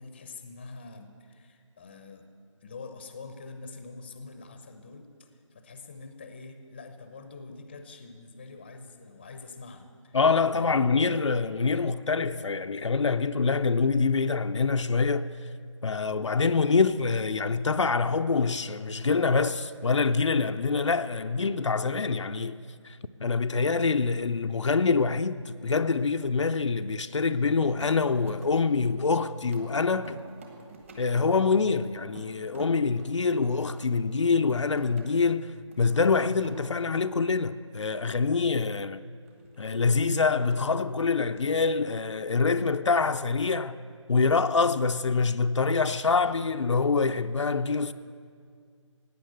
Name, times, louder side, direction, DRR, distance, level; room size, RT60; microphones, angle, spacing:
voice 1, 0.0-2.3 2.6-10.2 10.5-11.3, left 3 dB, 20° left, 0.7 m, -45 dB
voice 2, 10.1-15.3 15.8-22.6 22.8-30.2 31.0-39.0 39.6-43.8 44.1-47.9, left 4 dB, 65° left, 0.5 m, -25 dB
sound 1, 27.8-35.3 35.6-36.6 39.3-40.1, right 3 dB, 25° right, 1.3 m, -49 dB
16.0 x 9.5 x 8.0 m
figure-of-eight pair, 165°, 16 cm